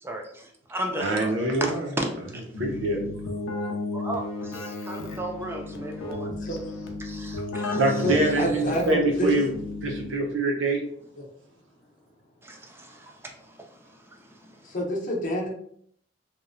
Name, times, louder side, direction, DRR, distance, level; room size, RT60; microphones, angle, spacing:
voice 1, 0.0-1.3 1.6-1.7 2.0-2.1 3.9-6.3 7.0-7.8 12.4-13.3, right 1 dB, 10° right, 2 dB, 0.3 m, -34 dB
voice 2, 1.0-1.9 2.6-3.1 7.8-9.5 9.8-10.8, right 2 dB, 70° right, 2 dB, 0.6 m, -24 dB
Keyboard (musical), 2.5-10.4, left 2 dB, 85° left, 0.5 m, -34 dB
voice 3, 6.4-6.9 7.5-7.7 8.0-9.3 11.2-11.3 14.6-15.5, equal, 45° left, -1 dB, 0.6 m, -29 dB
2.8 x 2.0 x 2.4 m, 0.65 s
head